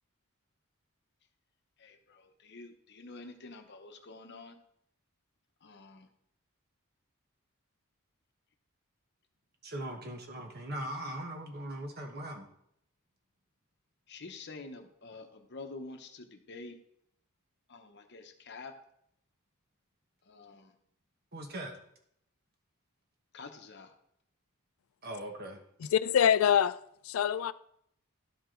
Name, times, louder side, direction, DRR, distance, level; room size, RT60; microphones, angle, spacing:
voice 1, 1.8-4.6 5.6-6.1 14.1-16.8 17.7-18.8 20.2-20.8 23.3-23.9, left 3 dB, 55° left, 0.9 m, -48 dB
voice 2, 9.6-12.5 21.3-21.7 25.0-25.6, right 1 dB, 45° right, 1.3 m, -40 dB
voice 3, 25.9-26.8 27.0-27.5, left 8 dB, 75° left, 0.3 m, -24 dB
12.0 x 4.7 x 3.8 m
head